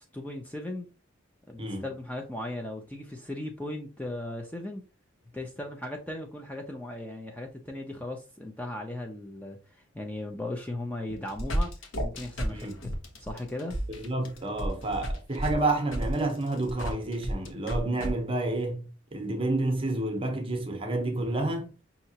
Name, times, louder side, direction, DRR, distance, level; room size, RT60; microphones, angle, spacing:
voice 1, 0.1-0.9 1.5-4.8 5.3-11.7 12.0-12.7 13.2-13.8 17.9-18.2, left 1 dB, 10° left, 0.4 m, -37 dB
sound 1, 11.1-18.1, equal, 70° left, 1.1 m, -32 dB
voice 2, 12.5-12.8 13.9-21.8, right 2 dB, 25° right, 0.8 m, -30 dB
5.5 x 2.8 x 2.8 m
head